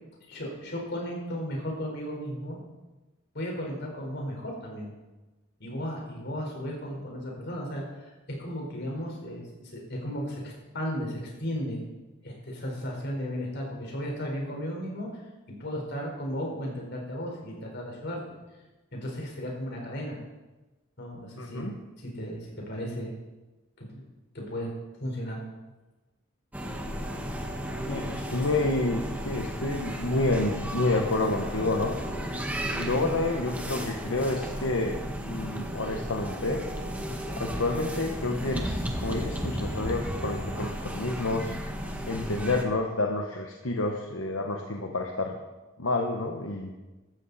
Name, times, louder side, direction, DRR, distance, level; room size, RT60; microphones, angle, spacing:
voice 1, 0.3-2.6 3.3-4.9 5.6-8.1 8.4-11.8 12.2-15.2 15.5-18.2 18.9-20.2 21.0-21.7 22.0-23.1 23.8-24.0 24.3-24.7 25.0-25.4, equal, 60° left, -1 dB, 4.7 m, -35 dB
voice 2, 21.4-21.7 27.9-32.0 32.7-35.0 35.2-36.6 37.4-41.5 42.1-45.4 45.8-46.7, left 2 dB, 80° left, 2 dB, 1.2 m, -29 dB
sound 1, 26.5-42.6, equal, 10° right, 1.5 m, -34 dB
15.5 x 13.0 x 4.2 m, 1.1 s
head